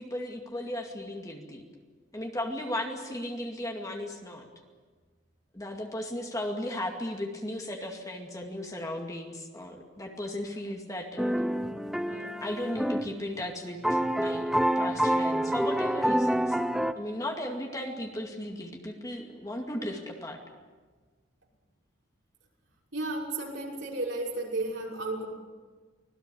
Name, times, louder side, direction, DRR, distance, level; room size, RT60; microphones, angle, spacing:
voice 1, 0.0-1.6 2.1-4.5 5.5-11.3 12.1-16.6 16.9-20.4, left 1 dB, 15° left, 2 dB, 2.2 m, -36 dB
sound 1, 11.2-13.1 13.4-13.5 13.8-16.9, equal, ahead, 0.8 m, -27 dB
voice 2, 22.9-25.3, right 2 dB, 70° right, -2 dB, 6.1 m, -33 dB
25.0 x 18.0 x 8.6 m, 1.4 s
head